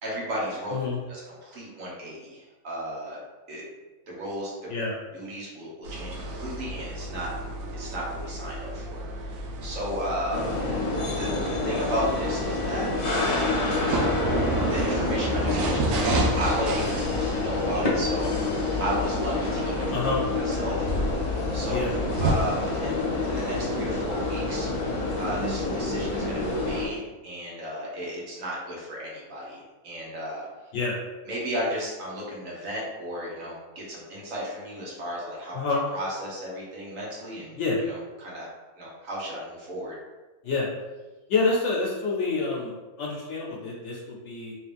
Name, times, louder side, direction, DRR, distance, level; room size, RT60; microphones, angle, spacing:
voice 1, 0.0-0.7 1.1-3.2 3.5-3.6 4.1-4.7 5.1-7.3 7.7-10.5 11.1-11.3 11.6-13.5 14.7-18.3 18.8-19.9 20.4-20.9 21.5-21.8 22.2-24.7 25.2-30.5 31.3-35.6 35.9-38.5 38.8-39.9, equal, 65° right, -5 dB, 1.4 m, -34 dB
sound 1, 5.8-22.3, right 2 dB, 85° right, 1.1 m, -32 dB
sound 2, 10.3-26.8, left 3 dB, 45° left, 0.5 m, -28 dB
voice 2, 19.9-20.2 21.7-21.9 30.7-31.0 35.5-35.8 37.5-37.8 40.4-40.7 41.3-44.5, left 3 dB, 60° left, -3 dB, 0.8 m, -27 dB
3.1 x 3.0 x 3.3 m, 1.2 s
omnidirectional pair, 1.6 m